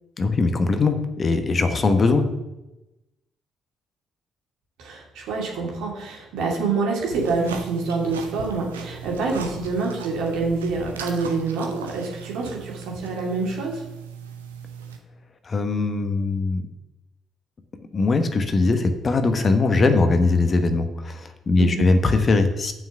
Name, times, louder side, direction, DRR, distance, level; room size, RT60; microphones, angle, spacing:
voice 1, 0.2-2.3 15.4-16.6 17.9-22.7, left 3 dB, 40° left, 8 dB, 1.1 m, -20 dB
voice 2, 4.8-13.8 21.6-21.9, right 4 dB, 65° right, -1 dB, 2.3 m, -26 dB
sound 1, 7.1-15.0, right 6 dB, 80° right, 0.8 m, -38 dB
7.1 x 6.2 x 6.7 m, 0.97 s
figure-of-eight pair, 45°, 0 cm